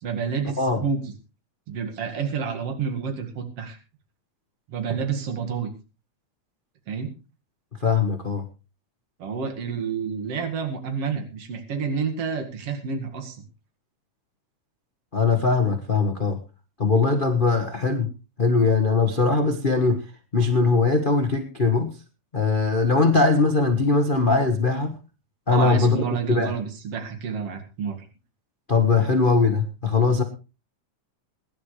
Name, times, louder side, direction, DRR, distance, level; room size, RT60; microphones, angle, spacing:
voice 1, 0.0-1.1 1.7-3.8 4.7-5.7 6.9-7.1 9.2-13.4 25.5-28.0, right 6 dB, 55° right, 4 dB, 2.9 m, -29 dB
voice 2, 7.8-8.4 15.1-16.4 16.8-18.1 18.4-20.0 20.3-21.9 22.3-24.9 25.5-26.5 28.7-30.2, left 4 dB, 40° left, 5 dB, 0.7 m, -21 dB
22.0 x 11.0 x 3.3 m, 0.31 s
omnidirectional pair, 3.3 m